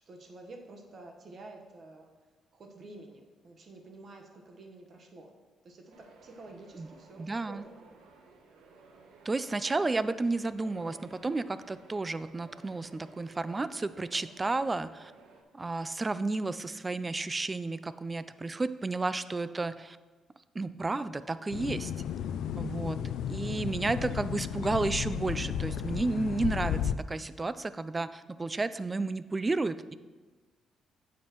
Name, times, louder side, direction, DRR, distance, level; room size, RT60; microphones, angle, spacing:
voice 1, 0.1-2.1 2.5-5.3 5.6-7.8 18.4-18.6 21.7-22.7, right 2 dB, 50° right, 3 dB, 1.1 m, -50 dB
sound 1, 5.9-15.4, right 3 dB, 85° right, 1.0 m, -56 dB
voice 2, 7.2-7.7 9.3-15.1 15.5-20.0 20.5-21.9 22.6-23.0 23.3-29.9, right 3 dB, 25° right, 14 dB, 0.3 m, -32 dB
sound 2, 21.5-27.0, left 9 dB, 80° left, 0.3 m, -33 dB
9.4 x 7.2 x 3.0 m, 1.3 s
cardioid pair, 90°, 0 cm